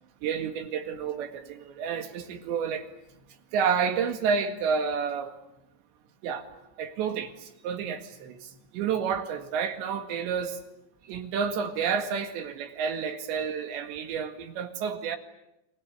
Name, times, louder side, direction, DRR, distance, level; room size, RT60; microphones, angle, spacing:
voice 1, 0.2-2.9 3.5-5.3 6.2-6.5 6.8-8.5 8.7-10.6 11.1-15.2, right 6 dB, 80° right, 8 dB, 4.3 m, -30 dB
29.5 x 24.0 x 8.5 m, 0.85 s
omnidirectional pair, 5.1 m